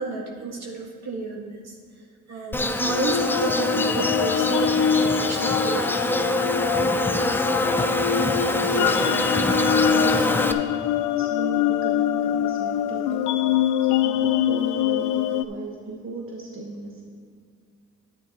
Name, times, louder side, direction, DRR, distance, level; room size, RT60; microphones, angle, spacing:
voice 1, 0.0-1.6 2.3-6.0, right 3 dB, 60° right, 0 dB, 1.8 m, -31 dB
Insect, 2.5-10.5, left 1 dB, 5° left, 0.5 m, -24 dB
sound 1, 2.9-15.4, left 9 dB, 85° left, 0.5 m, -24 dB
voice 2, 8.1-10.7 11.1-13.4 13.8-17.0, right 3 dB, 45° right, -1 dB, 1.2 m, -34 dB
10.0 x 8.7 x 3.8 m, 2.2 s
cardioid pair, 90°, 30 cm